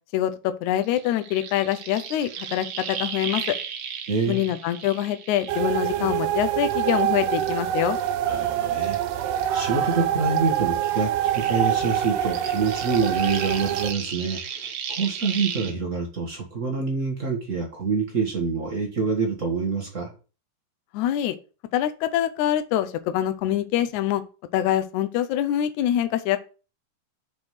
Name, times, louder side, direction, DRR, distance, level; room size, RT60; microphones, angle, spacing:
voice 1, 0.1-3.6 4.3-8.0 20.9-21.4 21.7-24.2 24.5-26.4, left 12 dB, 75° left, 10 dB, 2.0 m, -25 dB
sound 1, 0.8-6.3 6.7-10.0 10.3-15.7, right 7 dB, 65° right, 2.0 m, -36 dB
voice 2, 4.1-4.5 6.0-6.1 8.3-9.0 9.5-20.1, right 4 dB, 45° right, 1 dB, 1.0 m, -26 dB
sound 2, 5.5-13.9, right 11 dB, 85° right, 2.3 m, -25 dB
6.2 x 4.9 x 5.6 m, 0.35 s
omnidirectional pair, 3.7 m